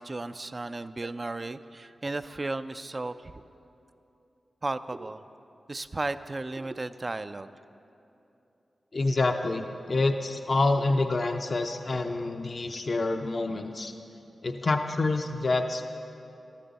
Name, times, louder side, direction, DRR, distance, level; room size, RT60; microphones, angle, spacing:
voice 1, 0.0-3.4 4.6-5.2 5.7-7.5, right 2 dB, 40° right, 12 dB, 0.4 m, -34 dB
voice 2, 8.9-13.9 14.4-15.8, left 2 dB, 55° left, 5 dB, 0.6 m, -27 dB
13.0 x 13.0 x 4.1 m, 2.8 s
cardioid pair, 45°, 0 cm